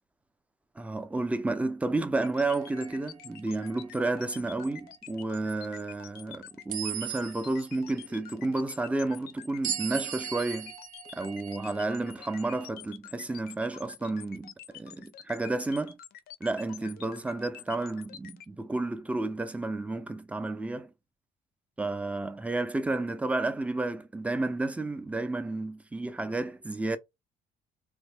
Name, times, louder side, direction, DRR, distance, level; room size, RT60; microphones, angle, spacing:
voice 1, 0.8-10.7 11.1-16.0 16.4-20.9 21.8-27.0, right 2 dB, 10° right, 0.4 m, -31 dB
sound 1, 2.1-18.5, left 11 dB, 70° left, 0.6 m, -47 dB
sound 2, 2.4-3.0 3.6-3.8 6.7-7.8 9.6-12.7, right 10 dB, 55° right, 0.6 m, -38 dB
3.5 x 2.1 x 3.3 m
cardioid pair, 110°, 17 cm